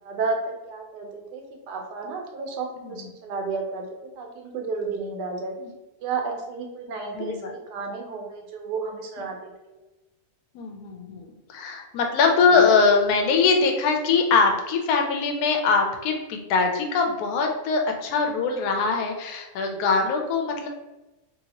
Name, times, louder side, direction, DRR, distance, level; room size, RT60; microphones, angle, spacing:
voice 1, 0.0-3.9 4.2-5.5 6.0-9.8 12.5-12.6, right 4 dB, 80° right, 2 dB, 1.2 m, -32 dB
voice 2, 7.1-7.5 10.5-20.7, left 4 dB, 70° left, 3 dB, 1.0 m, -22 dB
3.1 x 2.8 x 2.8 m, 1.0 s
omnidirectional pair, 1.8 m